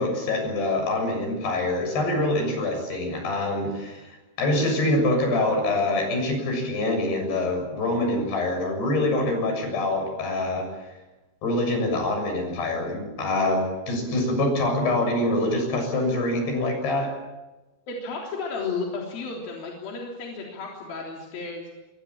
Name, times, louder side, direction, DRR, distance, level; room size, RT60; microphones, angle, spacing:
voice 1, 0.0-10.7 11.4-17.1, left 2 dB, 85° left, 4 dB, 9.1 m, -25 dB
voice 2, 17.9-21.6, left 4 dB, 65° left, -1 dB, 5.3 m, -33 dB
27.0 x 23.0 x 7.3 m, 1.1 s
omnidirectional pair, 4.6 m